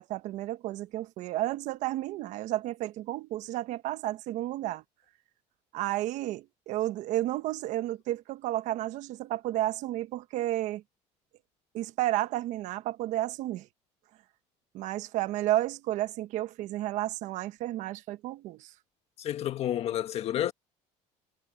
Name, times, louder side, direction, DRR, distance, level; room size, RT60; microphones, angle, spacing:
voice 1, 0.0-4.8 5.7-10.8 11.7-13.7 14.7-18.7, right 15 dB, 70° right, 1.2 m, -32 dB
voice 2, 19.2-20.5, left 11 dB, 50° left, 1.6 m, -30 dB
cardioid pair, 120°, 13 cm